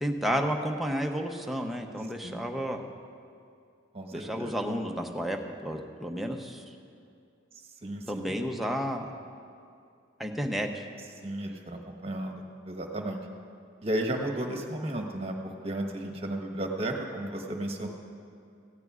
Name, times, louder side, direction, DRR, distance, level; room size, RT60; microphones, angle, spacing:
voice 1, 0.0-2.8 4.1-6.6 8.1-9.1 10.2-10.8, equal, ahead, 2 dB, 0.7 m, -31 dB
voice 2, 3.9-4.6 7.8-8.4 11.2-13.2 13.8-17.9, right 1 dB, 30° right, 2 dB, 1.2 m, -34 dB
18.5 x 15.0 x 2.4 m, 2.4 s
head